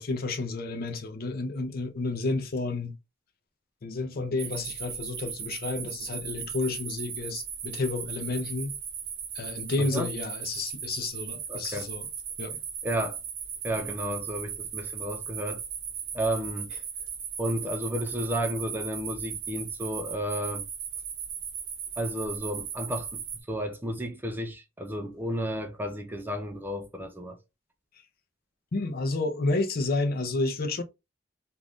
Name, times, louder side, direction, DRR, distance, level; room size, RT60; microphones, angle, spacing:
voice 1, 0.0-3.0 3.8-8.7 9.3-12.1 12.4-12.6 28.7-30.8, left 3 dB, 50° left, 0.5 m, -30 dB
sound 1, 4.4-23.4, right 8 dB, 75° right, 0.9 m, -37 dB
voice 2, 9.8-10.1 11.5-11.9 12.8-13.2 13.6-15.6 16.1-16.7 17.4-20.7 22.0-27.4, equal, 10° right, 0.4 m, -32 dB
2.5 x 2.3 x 3.4 m
head